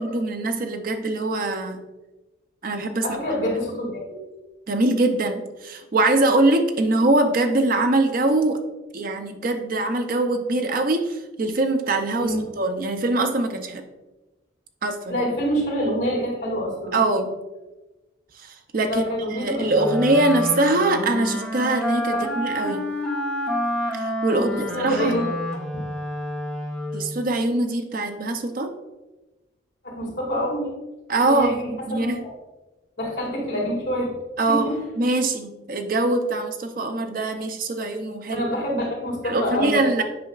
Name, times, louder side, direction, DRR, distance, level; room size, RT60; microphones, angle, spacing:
voice 1, 0.0-1.8 2.6-3.2 4.7-8.6 8.9-13.8 14.8-15.2 16.9-17.3 18.4-19.0 19.3-22.8 23.9-24.5 24.8-25.1 26.9-28.7 31.1-32.2 34.4-38.5 39.2-40.0, right 2 dB, 45° right, 6 dB, 0.6 m, -23 dB
voice 2, 3.0-3.9 12.2-12.4 15.1-17.0 18.8-20.0 22.2-22.3 24.3-25.2 29.8-30.7 31.3-32.1 33.0-34.1 34.5-34.8 38.3-40.0, equal, 55° left, -3 dB, 2.2 m, -26 dB
Wind instrument woodwind instrument, 19.7-27.2, left 1 dB, ahead, 1.0 m, -29 dB
8.4 x 5.6 x 2.4 m, 1.1 s
head